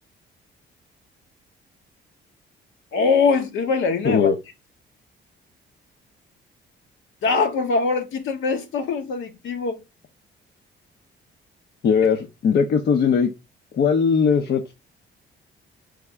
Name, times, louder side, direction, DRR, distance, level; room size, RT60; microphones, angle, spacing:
voice 1, 2.9-4.3 7.2-9.8, left 4 dB, 80° left, 1.1 m, -22 dB
voice 2, 4.0-4.3 11.8-13.3 13.7-14.7, left 6 dB, 55° left, 0.7 m, -19 dB
4.0 x 3.5 x 3.5 m
cardioid pair, 90°, 20 cm